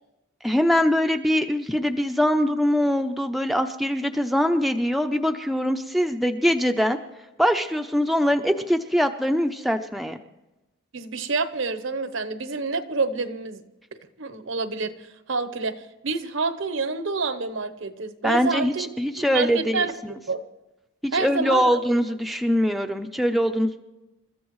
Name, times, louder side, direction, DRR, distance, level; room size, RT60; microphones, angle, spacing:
voice 1, 0.4-7.0 7.4-10.2 18.2-20.1 21.0-23.8, equal, ahead, 5 dB, 0.6 m, -23 dB
voice 2, 10.9-13.6 14.2-18.9 19.3-19.9 20.3-20.4 21.1-21.8, right 4 dB, 75° right, 10 dB, 0.9 m, -28 dB
28.5 x 14.0 x 3.1 m, 1.0 s
head